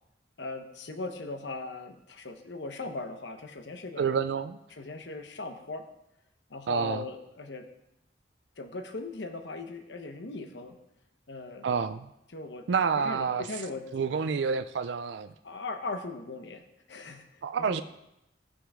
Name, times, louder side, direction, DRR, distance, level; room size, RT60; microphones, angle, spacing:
voice 1, 0.4-4.1 4.7-5.8 6.5-7.7 8.6-10.8 11.3-11.7 12.3-12.7 13.0-13.9 15.4-17.8, left 3 dB, 85° left, 7 dB, 1.0 m, -39 dB
voice 2, 4.0-4.6 6.7-7.0 11.6-12.1 12.7-13.5 13.9-15.3 17.4-17.8, right 6 dB, 85° right, 11 dB, 0.4 m, -28 dB
15.5 x 6.2 x 4.8 m, 0.87 s
head